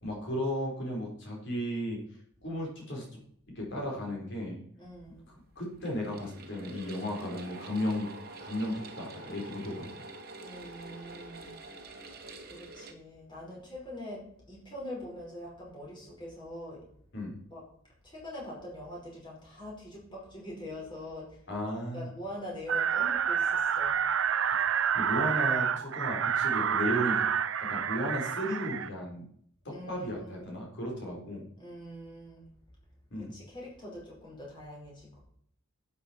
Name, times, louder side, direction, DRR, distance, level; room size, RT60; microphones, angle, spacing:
voice 1, 0.0-2.0 2.4-3.1 3.5-4.6 5.3-8.1 8.4-10.0 17.1-17.3 21.5-22.1 24.9-27.3 27.6-29.3 29.6-31.4 33.1-33.3, equal, 55° left, -1 dB, 4.2 m, -34 dB
voice 2, 4.8-5.3 10.4-11.6 12.5-16.9 17.5-17.6 18.0-21.4 21.9-24.0 29.7-30.5 31.6-32.5 33.2-35.2, left 1 dB, 20° left, -4 dB, 5.2 m, -43 dB
sound 1, 5.8-12.9, right 2 dB, 45° right, 1.4 m, -46 dB
sound 2, 22.7-28.9, right 8 dB, 60° right, 0.5 m, -28 dB
11.5 x 8.5 x 4.5 m, 0.65 s
head